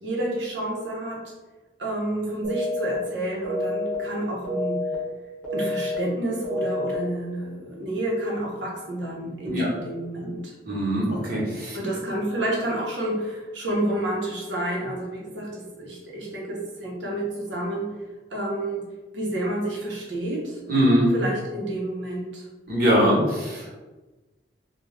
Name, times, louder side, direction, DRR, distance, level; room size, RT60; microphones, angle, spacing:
voice 1, 0.0-1.2 1.8-4.8 5.5-10.5 11.7-17.9 18.3-18.8 19.1-20.6 21.1-22.4, right 1 dB, 75° right, -3 dB, 0.8 m, -29 dB
sound 1, 2.4-2.9 3.4-3.9 4.4-4.9 5.4-5.9 6.4-6.9, left 1 dB, 10° left, 0.9 m, -28 dB
voice 2, 10.7-11.8 20.7-21.1 22.7-23.8, equal, 55° right, -6 dB, 1.1 m, -22 dB
2.4 x 2.3 x 3.2 m, 1.2 s
head